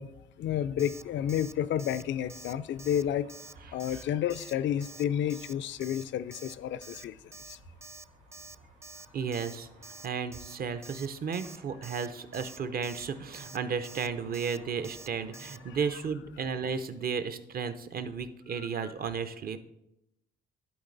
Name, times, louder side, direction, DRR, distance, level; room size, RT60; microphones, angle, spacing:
voice 1, 0.0-3.3 3.7-7.6 15.7-15.8 18.6-18.9, left 10 dB, 70° left, 0.4 m, -31 dB
Alarm, 0.8-1.0 1.3-1.5 1.8-2.0 2.3-2.5 2.8-3.0 3.3-3.5 3.8-4.0 4.3-4.5 4.8-5.0 5.3-5.5 5.8-6.0 6.3-6.5 6.8-7.0 7.3-7.5 7.8-8.0 8.3-8.5 8.8-9.1 9.3-9.6 9.8-10.1 10.3-10.6 10.8-11.1 11.3-11.6 11.8-12.1 12.3-12.6 12.8-13.1 13.3-13.6 13.8-14.1 14.3-14.6 14.8-15.1 15.3-15.6, right 3 dB, 15° right, 0.3 m, -47 dB
Night time Highway, 0.9-16.0, right 2 dB, 70° right, 3.3 m, -58 dB
voice 2, 9.1-9.7 10.0-19.6, right 6 dB, 50° right, 0.7 m, -34 dB
11.5 x 4.1 x 3.9 m
cardioid pair, 90°, 20 cm